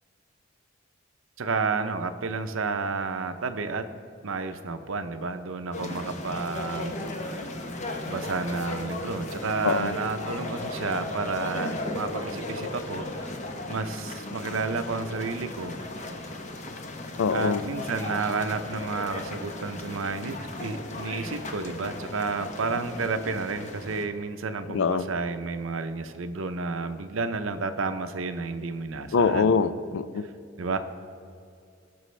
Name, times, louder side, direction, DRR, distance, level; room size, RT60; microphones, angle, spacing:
voice 1, 1.4-3.8 4.2-7.4 8.1-13.3 13.7-15.8 17.3-20.4 20.6-29.5 30.6-30.8, right 4 dB, 85° right, 9 dB, 0.7 m, -31 dB
sound 1, 5.7-24.0, left 2 dB, 35° left, 0.8 m, -36 dB
voice 2, 9.6-9.9 17.2-17.6 24.7-25.0 29.1-30.2, left 5 dB, 75° left, 15 dB, 0.4 m, -24 dB
18.0 x 6.2 x 3.3 m, 2.5 s
head